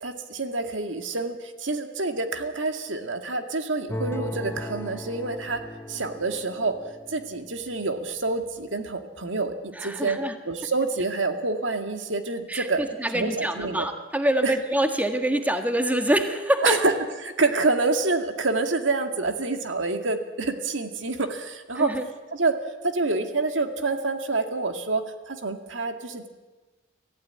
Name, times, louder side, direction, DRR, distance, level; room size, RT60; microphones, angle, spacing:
voice 1, 0.0-5.6 5.9-6.7 7.1-10.2 10.5-12.8 13.1-13.9 14.4-14.6 16.6-16.9 17.2-21.9 22.3-22.5 22.8-26.3, right 3 dB, 75° right, 6 dB, 2.1 m, -27 dB
sound 1, 3.9-7.9 8.4-8.5, left 1 dB, 15° left, 0.8 m, -37 dB
voice 2, 9.8-10.4 12.5-16.8 21.8-22.1, right 1 dB, 10° right, 5 dB, 1.7 m, -25 dB
24.5 x 15.5 x 9.5 m, 1.3 s
head